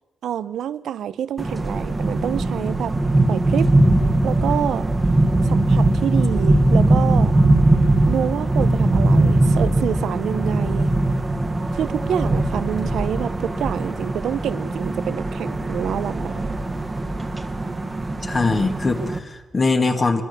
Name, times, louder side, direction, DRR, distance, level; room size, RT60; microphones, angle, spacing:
voice 1, 0.2-3.0 3.3-3.7 4.2-4.9 5.4-7.3 8.1-10.9 11.7-16.5, right 9 dB, 85° right, 15 dB, 0.9 m, -27 dB
sound 1, 1.4-19.2, right 2 dB, 20° right, 1.7 m, -20 dB
voice 2, 18.2-20.2, left 3 dB, 30° left, 6 dB, 2.0 m, -21 dB
24.0 x 22.0 x 7.0 m, 1.1 s
wide cardioid pair, 140°, 0 cm